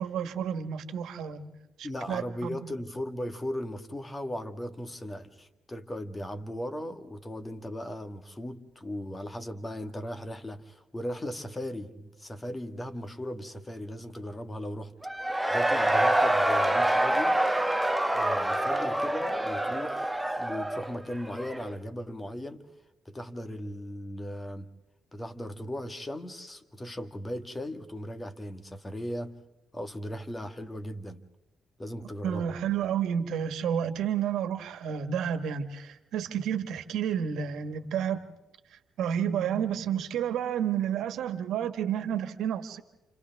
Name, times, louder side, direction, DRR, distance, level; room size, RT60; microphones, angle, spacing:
voice 1, 0.0-2.6 32.2-38.3 39.0-42.8, right 8 dB, 80° right, 1.6 m, -30 dB
voice 2, 1.8-14.9 15.5-17.4 18.1-22.7 23.1-24.7 25.1-29.4 29.7-31.2 31.8-32.6, equal, 15° left, 1.7 m, -37 dB
Cheering / Crowd, 15.0-21.7, right 1 dB, 5° right, 1.1 m, -26 dB
29.5 x 29.0 x 3.6 m
cardioid pair, 90°, 0 cm